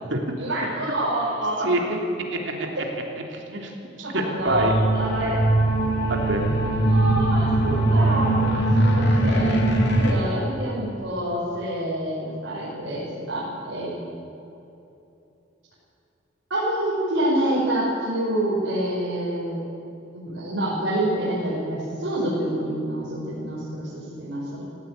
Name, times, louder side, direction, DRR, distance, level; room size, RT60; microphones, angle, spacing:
voice 1, 0.4-1.7 2.7-2.8 4.0-5.4 6.8-8.5 8.9-9.6 10.0-14.0 16.5-19.6 20.1-24.6, right 1 dB, 85° right, -8 dB, 5.7 m, -27 dB
voice 2, 1.6-2.0 2.3-2.7 3.3-4.7 6.1-6.5, right 1 dB, 70° right, 1 dB, 3.1 m, -26 dB
sound 1, 4.5-10.1, right 1 dB, 60° left, 3.0 m, -21 dB
17.0 x 16.5 x 9.5 m, 2.8 s
head